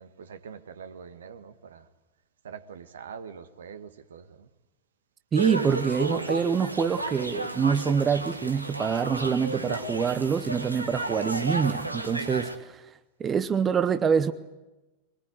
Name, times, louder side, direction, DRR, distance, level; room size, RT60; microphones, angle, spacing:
voice 1, 0.0-1.9 2.4-4.5, right 6 dB, 65° right, 1.5 m, -44 dB
voice 2, 5.3-12.8 13.2-14.3, right 7 dB, 20° right, 0.9 m, -25 dB
sound 1, 5.3-12.6, right 2 dB, 85° right, 1.5 m, -33 dB
23.0 x 19.5 x 9.7 m
figure-of-eight pair, 90°, 0 cm